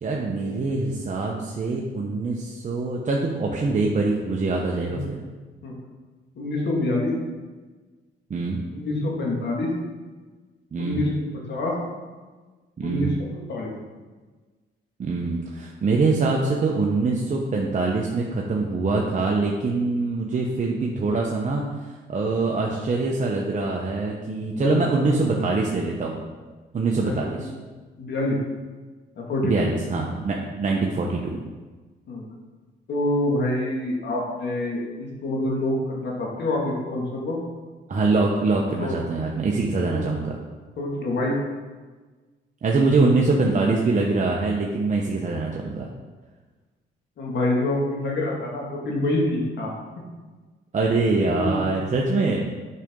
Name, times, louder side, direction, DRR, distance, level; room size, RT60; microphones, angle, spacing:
voice 1, 0.0-5.2 8.3-8.6 10.7-11.0 12.8-13.1 15.0-21.6 22.1-26.2 26.7-27.5 29.4-31.4 37.9-40.4 42.6-45.9 50.7-52.4, right 3 dB, 40° right, -1 dB, 0.9 m, -24 dB
voice 2, 6.4-7.1 8.7-9.7 10.8-11.8 12.8-13.7 22.5-22.6 24.5-25.1 27.0-27.5 28.0-28.4 29.2-29.7 32.1-32.3 32.9-37.4 38.8-39.0 39.9-40.1 40.8-41.3 47.2-49.7 51.2-51.6, left 1 dB, 65° left, -2 dB, 2.0 m, -26 dB
8.2 x 5.2 x 3.7 m, 1.3 s
cardioid pair, 85°, 19 cm